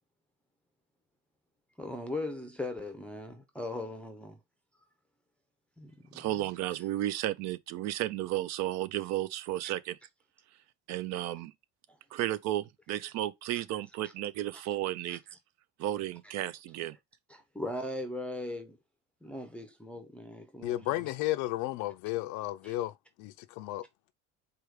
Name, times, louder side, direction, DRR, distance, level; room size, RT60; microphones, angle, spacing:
voice 1, 1.8-4.4 5.8-6.3 15.1-15.2 17.3-18.8 19.2-21.1 22.6-22.7, left 2 dB, 5° left, 0.6 m, -39 dB
voice 2, 6.1-10.0 10.9-11.5 12.1-15.2 15.8-17.0, right 14 dB, 60° right, 0.6 m, -33 dB
voice 3, 20.6-22.9 23.2-23.9, left 16 dB, 70° left, 0.5 m, -33 dB
4.6 x 2.4 x 4.8 m
cardioid pair, 125°, 31 cm